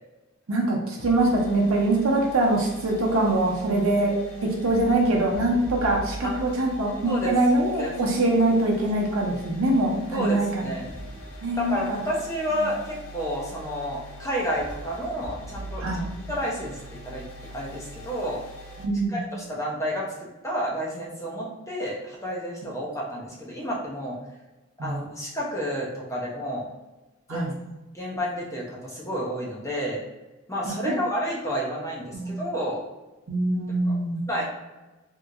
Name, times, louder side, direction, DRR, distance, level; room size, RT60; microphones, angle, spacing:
voice 1, 0.5-10.7 11.4-12.0 12.6-12.7 15.8-16.0 18.8-19.2 24.8-25.0 27.3-27.5 30.7-31.0 32.1-32.4 33.3-34.2, right 2 dB, 85° right, -1 dB, 0.7 m, -23 dB
sound 1, 1.0-18.9, equal, 85° left, 0.5 m, -41 dB
voice 2, 10.1-10.9 11.6-15.9 16.3-16.8 17.0-17.2 17.5-18.4 19.1-20.0 20.4-24.2 24.8-26.7 27.3-27.5 27.9-30.0 30.5-32.8 33.9-34.0 34.3-34.4, equal, 15° left, -4 dB, 0.6 m, -30 dB
2.9 x 2.7 x 2.4 m, 1.1 s
head